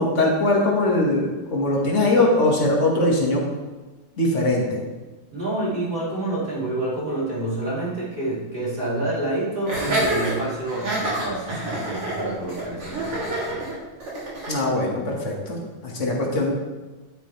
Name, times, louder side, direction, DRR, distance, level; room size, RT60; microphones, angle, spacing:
voice 1, 0.0-3.4 4.2-4.8 14.5-16.5, left 2 dB, 35° left, -2 dB, 2.1 m, -21 dB
voice 2, 5.3-13.7, right 1 dB, 25° right, -7 dB, 3.4 m, -28 dB
Laughter, 9.7-14.6, right 1 dB, 80° right, 4.0 m, -27 dB
11.0 x 9.0 x 3.4 m, 1.2 s
omnidirectional pair, 2.4 m